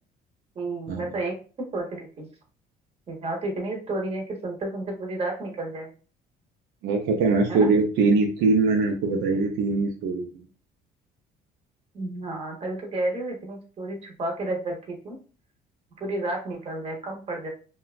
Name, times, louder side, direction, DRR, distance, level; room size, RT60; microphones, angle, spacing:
voice 1, 0.5-1.3 1.7-2.3 3.1-5.9 7.5-7.7 11.9-15.2 16.0-17.5, right 2 dB, 35° right, 1 dB, 0.9 m, -31 dB
voice 2, 6.8-10.3, right 3 dB, 85° right, 1 dB, 0.6 m, -22 dB
2.8 x 2.2 x 2.4 m, 0.37 s
cardioid pair, 110°, 17 cm